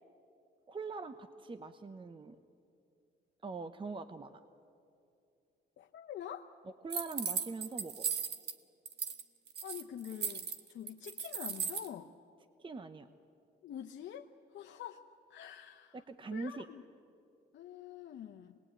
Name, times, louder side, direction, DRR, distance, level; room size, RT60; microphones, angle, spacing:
voice 1, 0.7-2.4 3.4-4.4 6.8-8.1 12.6-13.1 15.9-16.6, right 4 dB, 25° right, 10 dB, 0.9 m, -42 dB
voice 2, 5.8-6.5 9.6-12.1 13.6-15.0 15.3-16.0 16.3-16.8 17.5-18.6, left 10 dB, 70° left, 2 dB, 0.9 m, -46 dB
sound 1, 6.9-8.5 8.8-9.2 9.5-11.9, right 6 dB, 55° right, 1.4 m, -37 dB
26.0 x 20.5 x 9.0 m, 2.5 s
cardioid pair, 90°, 20 cm